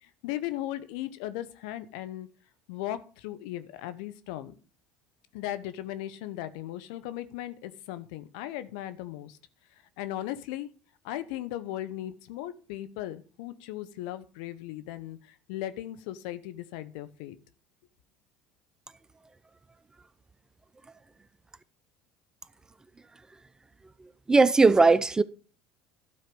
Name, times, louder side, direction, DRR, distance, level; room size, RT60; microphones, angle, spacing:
voice 1, 0.0-2.3 2.7-4.5 5.3-9.4 10.0-10.7 11.0-17.4, left 13 dB, 75° left, 0.8 m, -37 dB
voice 2, 24.3-25.2, right 3 dB, 15° right, 0.5 m, -18 dB
12.0 x 4.5 x 5.3 m
hypercardioid pair, 85°, 4 cm